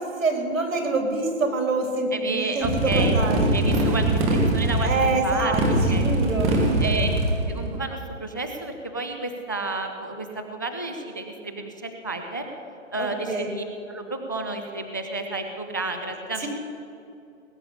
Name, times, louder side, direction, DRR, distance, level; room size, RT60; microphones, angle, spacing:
voice 1, 0.0-3.5 4.8-7.1 13.0-13.5 16.4-16.5, right 3 dB, 85° right, 3 dB, 4.0 m, -26 dB
voice 2, 2.1-3.1 3.5-4.1 4.5-4.9 5.2-6.1 6.8-7.1 7.5-12.5 12.9-16.5, right 3 dB, 15° left, 5 dB, 0.3 m, -31 dB
Motorcycle, 2.6-7.8, right 1 dB, 15° right, 1.7 m, -22 dB
19.5 x 8.2 x 8.5 m, 2.6 s
hypercardioid pair, 160°, 39 cm